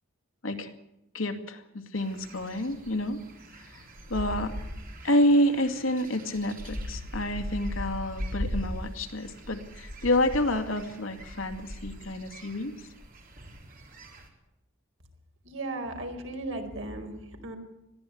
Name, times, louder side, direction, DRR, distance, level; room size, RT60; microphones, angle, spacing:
voice 1, 1.1-3.2 3.6-3.8 4.1-4.5 5.0-12.8, left 1 dB, 75° left, 6 dB, 2.4 m, -28 dB
sound 1, 2.0-14.3, equal, 45° right, 3.9 m, -39 dB
voice 2, 15.4-17.6, right 2 dB, 65° right, 4 dB, 4.7 m, -36 dB
21.0 x 15.0 x 8.6 m, 0.90 s
head